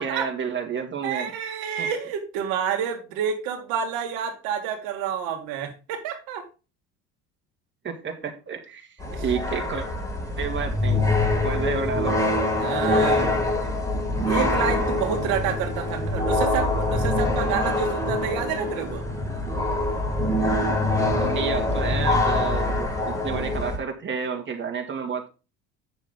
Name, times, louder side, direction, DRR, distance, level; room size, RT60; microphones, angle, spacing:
voice 1, 0.0-1.3 1.8-1.9 7.8-9.0 9.2-9.9 10.4-11.1 11.4-12.2 21.1-25.3, right 6 dB, 35° right, 3 dB, 2.4 m, -30 dB
voice 2, 1.0-6.5 9.1-9.2 12.6-13.4 14.3-19.0, right 8 dB, 75° right, 4 dB, 2.0 m, -29 dB
sound 1, 9.0-23.8, left 2 dB, 10° left, 4.5 m, -24 dB
9.0 x 7.0 x 3.8 m, 0.31 s
supercardioid pair, 85°, 35 cm